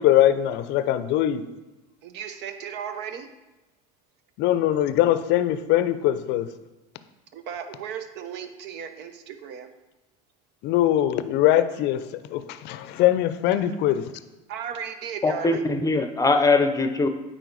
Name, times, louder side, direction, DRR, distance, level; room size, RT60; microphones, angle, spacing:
voice 1, 0.0-1.4 4.4-6.5 10.6-12.0 12.3-14.0, left 12 dB, 60° left, 12 dB, 0.6 m, -21 dB
voice 2, 2.0-3.3 7.3-9.7 14.5-15.6, right 8 dB, 55° right, 9 dB, 0.8 m, -35 dB
voice 3, 15.2-17.1, left 3 dB, 15° left, 7 dB, 0.7 m, -21 dB
9.3 x 3.8 x 4.0 m, 1.1 s
hypercardioid pair, 85°, 21 cm